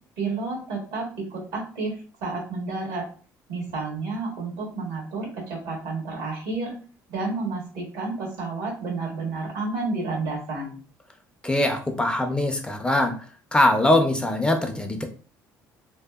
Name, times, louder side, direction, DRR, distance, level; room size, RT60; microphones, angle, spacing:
voice 1, 0.2-3.1 3.5-6.8 7.1-10.8, right 3 dB, 90° right, -2 dB, 1.3 m, -30 dB
voice 2, 11.4-13.1 13.5-15.0, left 1 dB, 15° left, 4 dB, 0.5 m, -22 dB
2.7 x 2.1 x 2.3 m, 0.39 s
supercardioid pair, 75°, 8 cm